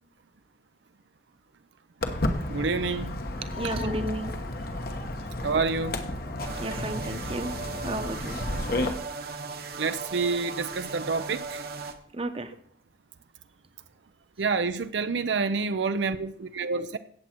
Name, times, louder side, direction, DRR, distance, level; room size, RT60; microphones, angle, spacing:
Walk footsteps, 2.0-8.9, left 1 dB, 55° left, 1.2 m, -32 dB
voice 1, 2.5-3.2 5.4-6.0 9.8-11.6 14.4-17.0, right 4 dB, 75° right, 10 dB, 0.6 m, -28 dB
voice 2, 3.4-4.4 6.6-7.5 7.8-8.4 12.1-12.5, right 1 dB, 30° right, 8 dB, 0.9 m, -32 dB
sound 1, 6.4-11.9, right 4 dB, 55° right, 1.2 m, -37 dB
16.5 x 7.6 x 4.5 m, 0.62 s
head